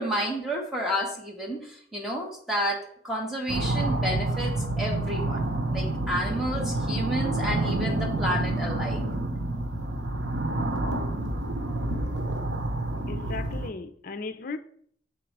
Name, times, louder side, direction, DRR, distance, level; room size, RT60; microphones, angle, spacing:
voice 1, 0.0-2.8 3.0-9.0, equal, ahead, 1.6 m, -31 dB
sound 1, 3.5-13.7, right 2 dB, 85° right, 0.8 m, -28 dB
voice 2, 13.1-14.6, left 3 dB, 55° left, 0.5 m, -36 dB
7.6 x 3.8 x 4.7 m
head